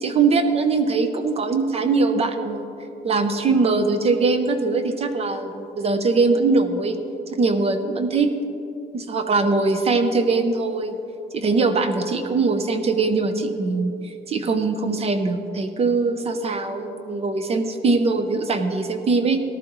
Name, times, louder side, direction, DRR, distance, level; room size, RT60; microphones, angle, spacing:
voice 1, 0.0-2.6 3.0-7.0 7.3-8.3 8.9-11.0 11.3-19.4, right 3 dB, 35° right, 8 dB, 0.6 m, -21 dB
14.5 x 12.0 x 3.1 m, 2.8 s
cardioid pair, 165°, 17 cm